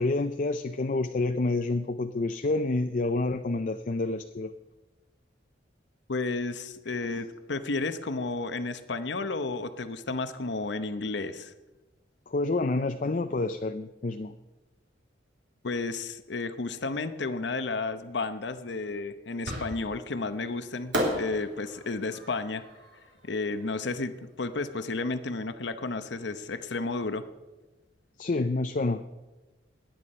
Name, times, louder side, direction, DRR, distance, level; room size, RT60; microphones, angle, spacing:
voice 1, 0.0-4.5 7.0-7.2 12.3-14.3 28.2-29.0, left 2 dB, 45° left, 9 dB, 0.5 m, -28 dB
voice 2, 6.1-11.5 15.6-22.7 23.2-27.2, left 3 dB, 70° left, 11 dB, 0.8 m, -32 dB
Fireworks, 19.4-20.1 20.9-24.0, equal, 75° right, 3.2 m, -34 dB
20.0 x 9.4 x 5.5 m, 1.1 s
head